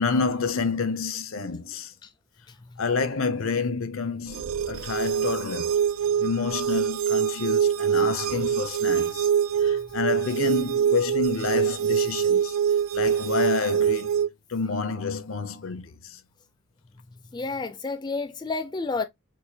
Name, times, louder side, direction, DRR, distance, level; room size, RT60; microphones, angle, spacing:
voice 1, 0.0-1.9 2.8-4.4 4.7-5.8 6.2-9.3 9.6-12.6 12.9-14.1 14.5-15.9, left 4 dB, 85° left, 0.6 m, -28 dB
sound 1, 4.3-14.3, right 8 dB, 85° right, 0.4 m, -24 dB
voice 2, 17.3-19.0, left 3 dB, 20° left, 0.3 m, -30 dB
4.6 x 2.2 x 2.7 m
head